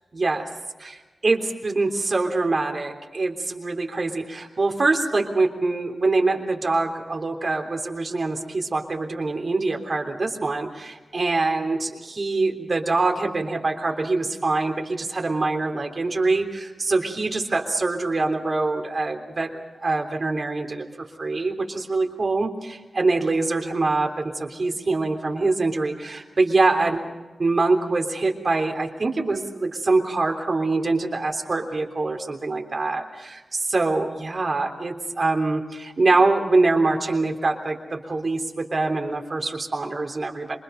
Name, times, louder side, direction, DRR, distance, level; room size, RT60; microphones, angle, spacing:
voice 1, 0.1-0.5 0.8-20.8 21.2-27.0 27.4-40.6, right 3 dB, 45° right, 3 dB, 3.4 m, -24 dB
27.5 x 24.0 x 5.4 m, 1.2 s
wide cardioid pair, 135°, 0 cm